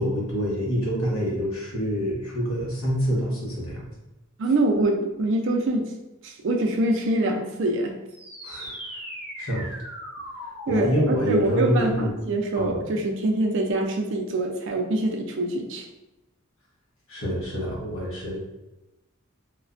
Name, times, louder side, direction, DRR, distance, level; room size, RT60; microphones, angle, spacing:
voice 1, 0.0-3.8 8.4-8.8 9.4-9.7 10.7-12.1 12.5-12.7 17.1-18.4, equal, 70° left, -3 dB, 0.9 m, -26 dB
voice 2, 4.4-5.9 6.2-8.0 10.7-15.9, right 2 dB, 55° right, 3 dB, 0.4 m, -25 dB
sound 1, 8.1-13.1, equal, 5° right, 0.5 m, -39 dB
3.2 x 2.1 x 2.4 m, 0.98 s
head